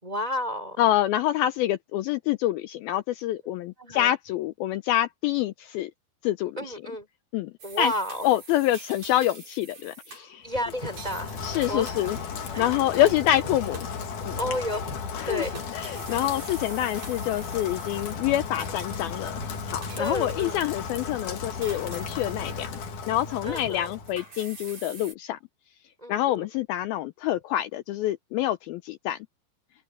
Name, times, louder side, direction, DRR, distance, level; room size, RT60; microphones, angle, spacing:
voice 1, 0.0-0.8 3.8-4.1 6.6-7.1 7.6-8.3 10.4-12.2 12.5-12.7 13.0-13.2 13.4-13.6 14.4-15.0 15.3-15.6 20.0-20.6 23.4-23.9 26.0-26.5, left 1 dB, 10° right, 4.7 m, -32 dB
voice 2, 0.8-5.9 6.2-6.6 7.3-7.5 7.8-7.9 8.2-10.5 11.4-12.2 12.6-13.8 14.3-14.4 15.2-15.4 15.7-19.4 19.7-22.7 23.1-25.4 26.1-29.2, left 13 dB, 85° left, 2.2 m, -26 dB
sound 1, 7.6-13.1 13.5-14.2 14.7-15.0 15.4-19.5 19.8-21.2 21.6-22.8 23.1-25.1, right 3 dB, 40° right, 9.3 m, -46 dB
Rain, 10.5-24.3, left 5 dB, 50° left, 3.4 m, -35 dB
open air
omnidirectional pair, 5.0 m